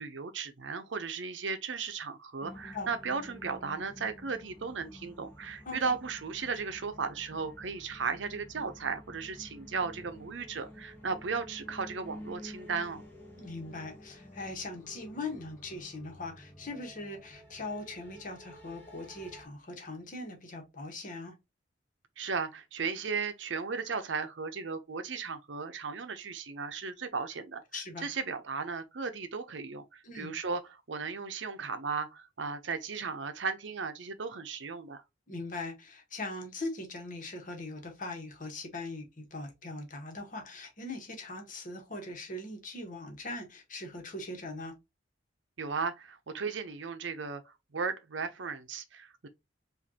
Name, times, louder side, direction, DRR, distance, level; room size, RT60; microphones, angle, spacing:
voice 1, 0.0-13.0 22.2-27.6 28.0-30.6 30.9-35.0 45.6-49.3, right 5 dB, 75° right, 0.7 m, -36 dB
sound 1, 2.4-19.5, left 1 dB, 10° left, 1.2 m, -51 dB
voice 2, 13.4-21.4 27.7-28.1 30.0-30.3 35.3-44.7, left 2 dB, 45° left, 1.3 m, -40 dB
5.0 x 2.6 x 2.8 m
head